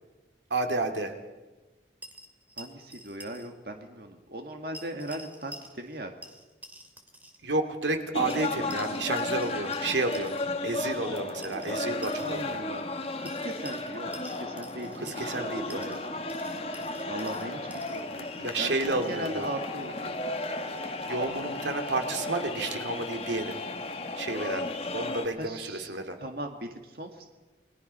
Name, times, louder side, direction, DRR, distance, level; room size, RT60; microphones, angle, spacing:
voice 1, 0.5-1.1 7.4-10.3 10.6-12.7 14.9-15.8 18.4-19.5 21.1-23.6 24.2-24.7 24.9-26.2, right 2 dB, 85° right, 5 dB, 2.5 m, -31 dB
sound 1, 2.0-3.5 3.7-3.8 4.7-6.0 6.2-7.4 8.3-10.4 11.4-12.5 13.3-15.4 15.7-18.0, right 1 dB, 10° right, 2.2 m, -48 dB
voice 2, 2.6-6.1 12.2-12.9 13.2-16.0 17.1-20.2 25.4-25.9 26.2-27.3, right 1 dB, 55° right, 4 dB, 1.9 m, -38 dB
sound 2, 8.1-25.3, left 2 dB, 35° left, 1.6 m, -34 dB
29.0 x 22.0 x 5.6 m, 1.2 s
head